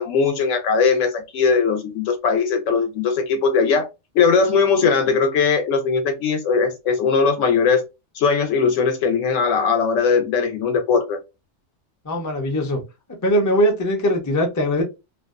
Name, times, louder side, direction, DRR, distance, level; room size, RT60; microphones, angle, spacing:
voice 1, 0.0-3.9 4.1-7.8 8.2-11.2, left 5 dB, 90° left, 1.0 m, -19 dB
voice 2, 12.0-12.8 13.2-14.8, equal, 30° left, 0.3 m, -20 dB
2.5 x 2.1 x 2.3 m
omnidirectional pair, 1.3 m